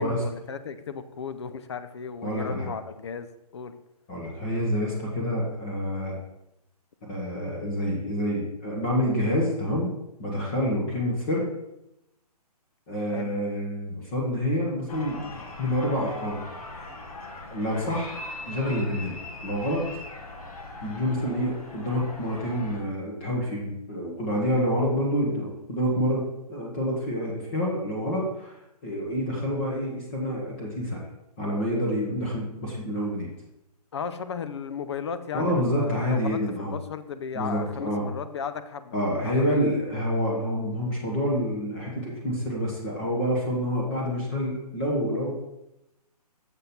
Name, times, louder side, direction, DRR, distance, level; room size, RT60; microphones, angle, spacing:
voice 1, 0.0-3.8 13.1-13.4 33.9-39.0 39.2-39.6, left 6 dB, 45° left, 11 dB, 0.6 m, -35 dB
voice 2, 2.2-2.7 4.1-6.1 7.1-9.9 10.2-11.5 12.9-15.3 15.6-16.4 17.5-18.2 18.5-19.9 20.8-31.0 31.4-33.3 35.3-36.8 37.3-38.1 38.9-45.3, equal, 20° left, -3 dB, 1.2 m, -27 dB
sound 1, 14.9-22.8, left 2 dB, 60° left, 1.6 m, -40 dB
6.9 x 6.1 x 4.3 m, 0.85 s
hypercardioid pair, 170°, 20 cm